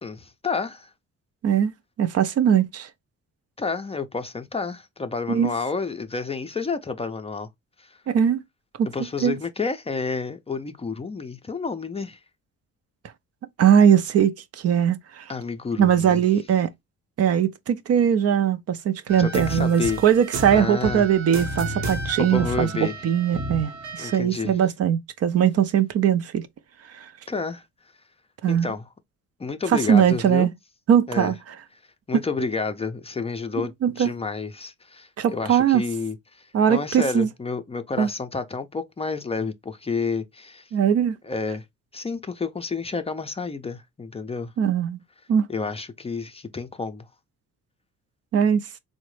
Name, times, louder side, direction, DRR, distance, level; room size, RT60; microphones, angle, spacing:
voice 1, 0.0-0.9 3.6-7.5 7.8-7.9 8.9-12.2 15.3-16.2 19.2-20.0 20.5-21.0 22.2-23.0 24.0-24.6 27.3-27.6 28.5-28.8 29.4-30.5 31.1-31.3 32.1-40.6 41.2-41.6 41.9-44.5 45.5-47.0, left 4 dB, 20° left, 0.4 m, -30 dB
voice 2, 2.0-2.9 5.3-5.5 8.1-8.4 8.8-8.9 9.2-9.4 13.6-15.3 15.8-16.7 17.2-26.5 26.9-27.1 28.4-28.7 29.7-30.5 30.9-31.4 33.8-34.1 35.2-35.8 36.5-37.3 38.0-38.1 40.7-41.2 44.6-45.0 45.3-45.4 48.3-48.6, right 8 dB, 55° right, 0.5 m, -20 dB
sound 1, 19.1-24.2, right 1 dB, 70° right, 0.9 m, -32 dB
3.7 x 2.1 x 3.0 m
cardioid pair, 90°, 30 cm